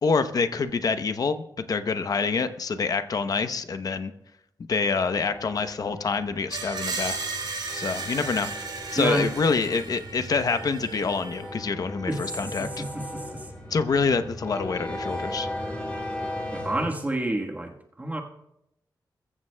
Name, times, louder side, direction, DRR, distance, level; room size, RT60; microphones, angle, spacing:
voice 1, 0.0-4.1 4.7-7.3 7.7-8.5 8.9-12.8 13.7-15.5, left 4 dB, 55° left, 0.8 m, -26 dB
sound 1, 5.0-16.9, left 1 dB, 15° left, 4.5 m, -37 dB
Screech, 6.5-11.5, right 3 dB, 85° right, 3.8 m, -35 dB
voice 2, 9.0-9.3 12.1-13.5 16.5-18.2, right 1 dB, 20° right, 1.3 m, -29 dB
21.5 x 14.5 x 2.2 m
wide cardioid pair, 150°, 8 cm